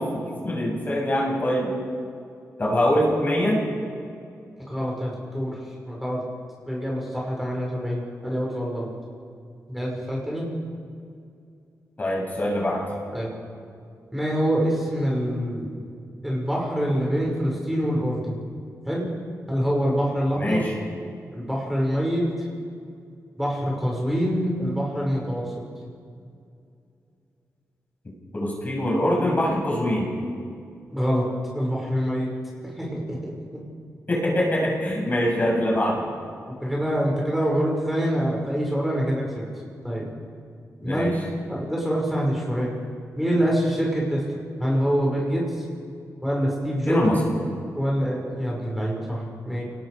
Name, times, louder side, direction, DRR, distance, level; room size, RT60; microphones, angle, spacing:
voice 1, 0.0-1.7 2.6-3.7 12.0-12.9 20.4-20.7 28.3-30.1 34.1-36.1 40.8-41.1 46.9-47.2, left 1 dB, 30° left, -2 dB, 7.2 m, -23 dB
voice 2, 4.7-5.6 5.9-6.2 6.7-8.9 9.7-10.5 13.1-13.3 14.1-15.7 16.2-18.4 18.9-19.1 19.5-20.6 21.3-22.2 23.4-25.4 30.9-31.2 31.5-32.3 32.8-33.3 36.6-39.2 39.8-40.1 40.8-41.1 41.5-42.7 43.2-44.2 44.6-45.4 46.2-47.0 47.7-49.6, equal, 5° right, -3 dB, 6.2 m, -25 dB
29.0 x 19.5 x 5.1 m, 2.4 s
wide cardioid pair, 100°, 6 cm